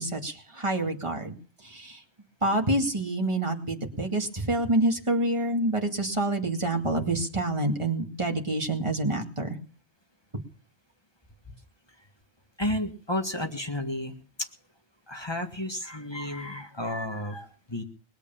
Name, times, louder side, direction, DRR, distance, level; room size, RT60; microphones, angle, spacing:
voice 1, 0.0-1.3 1.6-2.0 2.4-9.6, right 2 dB, 25° right, 3 dB, 2.3 m, -27 dB
voice 2, 12.6-14.1 15.1-17.8, left 1 dB, 25° left, 4 dB, 1.9 m, -32 dB
20.5 x 8.2 x 7.1 m, 0.42 s
omnidirectional pair, 1.1 m